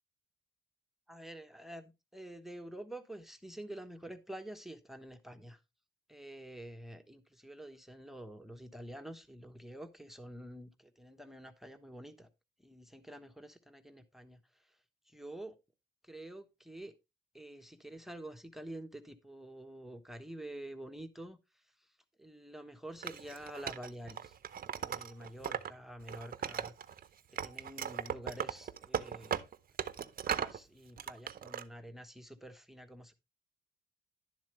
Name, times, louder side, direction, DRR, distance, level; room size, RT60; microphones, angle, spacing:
voice 1, 1.1-5.6 6.1-12.3 12.6-14.8 15.1-15.5 16.0-16.9 17.3-21.9 22.2-24.4 24.7-26.7 27.4-29.4 29.9-33.1, right 1 dB, ahead, 1.1 m, -48 dB
Wood, 23.0-25.7 26.0-27.0 27.4-30.6 31.0-31.6, right 8 dB, 45° right, 0.8 m, -38 dB
11.0 x 7.3 x 3.1 m
cardioid pair, 90°, 20 cm